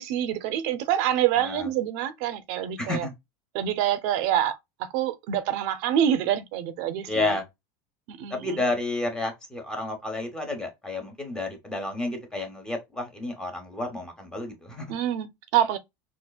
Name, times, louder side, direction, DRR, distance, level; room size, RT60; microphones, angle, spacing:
voice 1, 0.0-3.1 3.5-7.4 8.1-8.6 14.9-15.8, right 11 dB, 60° right, 0.5 m, -26 dB
voice 2, 1.4-1.7 2.8-3.1 7.1-7.4 8.3-14.9, left 2 dB, 5° left, 0.9 m, -31 dB
4.3 x 2.4 x 2.3 m
supercardioid pair, 150°, 10 cm